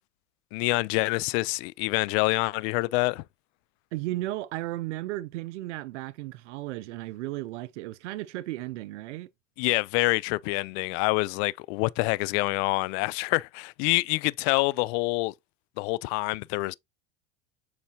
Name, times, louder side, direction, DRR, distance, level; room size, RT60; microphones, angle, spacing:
voice 1, 0.5-3.2 9.6-15.3 15.8-16.7, left 23 dB, 65° left, 0.5 m, -26 dB
voice 2, 3.9-9.3, right 17 dB, 85° right, 0.6 m, -34 dB
7.1 x 4.8 x 2.8 m
hypercardioid pair, 95°, 35 cm